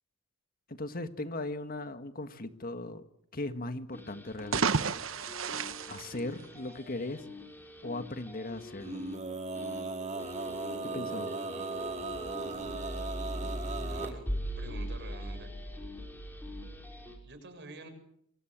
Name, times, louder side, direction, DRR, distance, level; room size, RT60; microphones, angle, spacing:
voice 1, 0.7-3.0 3.3-4.9 5.9-7.3 7.8-9.1 10.8-11.4, left 2 dB, 45° left, 9 dB, 1.8 m, -38 dB
sound 1, 3.9-17.2, equal, 10° left, 5.9 m, -41 dB
sound 2, 4.3-6.9, right 5 dB, 75° right, 1.1 m, -32 dB
Male singing, 8.8-14.1, right 3 dB, 35° right, 2.4 m, -38 dB
voice 2, 13.6-14.3 14.6-15.5 17.2-17.9, right 2 dB, 60° right, 8 dB, 7.3 m, -48 dB
28.0 x 24.5 x 7.6 m, 0.73 s
head